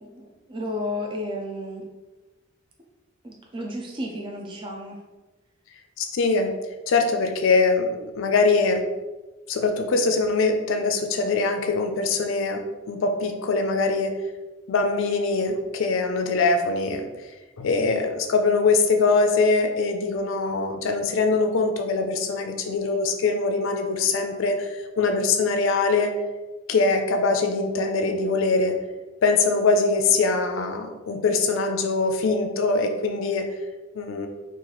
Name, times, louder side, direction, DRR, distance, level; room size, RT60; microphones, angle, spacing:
voice 1, 0.0-1.8 3.2-5.0, left 1 dB, 25° right, 0 dB, 0.4 m, -32 dB
voice 2, 6.0-6.5 6.9-8.8 9.5-14.1 14.7-17.3 17.6-26.1 26.7-28.8 29.2-33.5 33.9-34.3, left 3 dB, 80° left, 5 dB, 0.4 m, -23 dB
2.9 x 2.4 x 3.9 m, 1.2 s
head